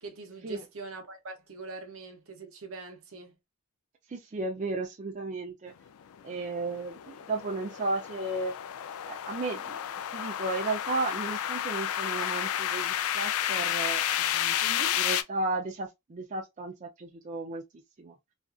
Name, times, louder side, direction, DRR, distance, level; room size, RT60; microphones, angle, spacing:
voice 1, 0.0-3.4 14.6-15.0, right 3 dB, 65° right, 0.7 m, -43 dB
voice 2, 4.1-5.7 6.2-8.5 9.1-9.8 10.1-14.6 15.0-17.6 18.0-18.1, right 3 dB, 35° right, 0.4 m, -34 dB
sound 1, 6.1-15.2, left 11 dB, 75° left, 0.3 m, -31 dB
2.4 x 2.4 x 2.3 m
head